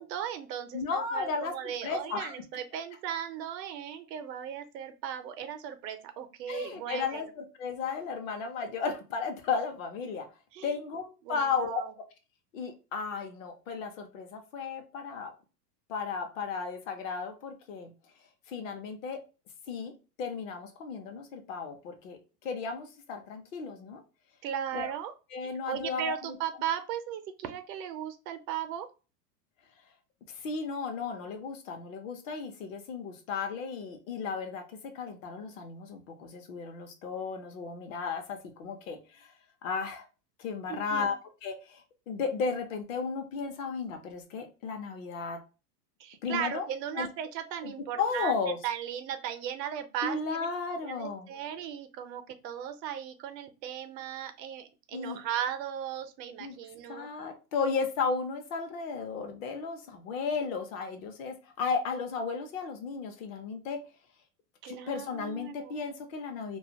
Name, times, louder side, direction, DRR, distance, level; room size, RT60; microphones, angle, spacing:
voice 1, 0.0-7.3 10.5-10.8 11.2-11.9 24.4-25.1 25.4-28.9 40.7-41.2 46.0-48.3 48.6-50.5 50.8-57.1 64.6-65.7, right 9 dB, 85° right, 9 dB, 0.7 m, -37 dB
voice 2, 0.7-2.3 6.5-10.3 10.6-11.8 12.5-15.3 15.9-17.9 18.5-19.2 19.7-19.9 20.2-24.0 24.7-24.9 25.3-26.4 30.3-39.3 39.6-40.1 40.4-41.1 41.4-45.4 46.2-46.6 47.0-47.1 47.6-48.6 50.0-51.3 54.9-55.2 56.4-56.6 56.9-63.8 64.6-66.6, left 5 dB, 55° left, 5 dB, 0.7 m, -34 dB
2.4 x 2.2 x 2.7 m, 0.32 s
supercardioid pair, 155°, 49 cm